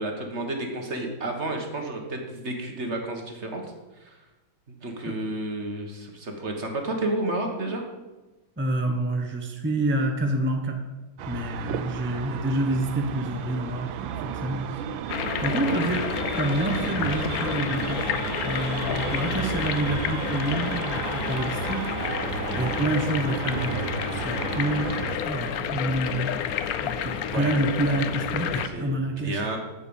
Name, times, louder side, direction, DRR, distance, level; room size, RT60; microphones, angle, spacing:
voice 1, 0.0-3.6 4.0-4.2 4.7-7.8 15.6-15.7 27.3-27.6 28.6-29.6, right 2 dB, 35° right, 3 dB, 1.6 m, -31 dB
voice 2, 8.6-10.8 11.3-13.9 14.2-14.8 15.4-16.0 16.4-18.1 18.4-21.9 22.5-23.8 24.1-24.9 25.2-26.3 26.8-29.4, right 1 dB, 15° right, 4 dB, 0.4 m, -27 dB
sound 1, 11.2-25.2, right 9 dB, 75° right, 1.4 m, -33 dB
sound 2, 15.1-28.7, left 8 dB, 70° left, 0.9 m, -30 dB
8.9 x 7.5 x 7.1 m, 1.1 s
omnidirectional pair, 2.1 m